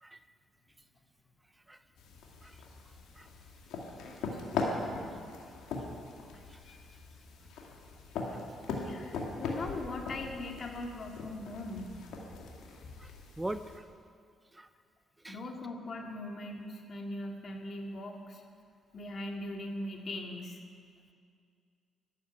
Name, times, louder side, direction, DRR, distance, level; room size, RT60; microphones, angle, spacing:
sound 1, 2.0-13.8, left 3 dB, 85° left, 2.1 m, -40 dB
voice 1, 8.8-12.0 15.3-18.4 18.9-20.6, left 2 dB, 50° left, 2 dB, 2.2 m, -40 dB
voice 2, 13.4-13.8 14.5-14.7 15.2-15.4, right 1 dB, 15° right, 11 dB, 0.6 m, -40 dB
12.5 x 9.1 x 9.6 m, 2.2 s
cardioid pair, 90°, 0 cm